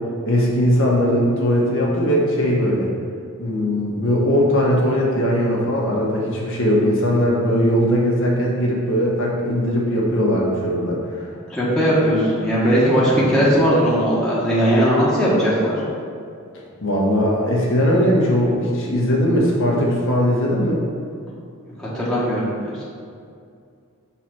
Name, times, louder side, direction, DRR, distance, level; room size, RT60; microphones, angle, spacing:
voice 1, 0.2-2.9 3.4-11.3 16.8-20.8, equal, 60° left, -3 dB, 1.4 m, -19 dB
voice 2, 11.5-15.8 21.8-22.5, equal, 5° left, -9 dB, 1.4 m, -18 dB
5.8 x 4.1 x 6.0 m, 2.3 s
head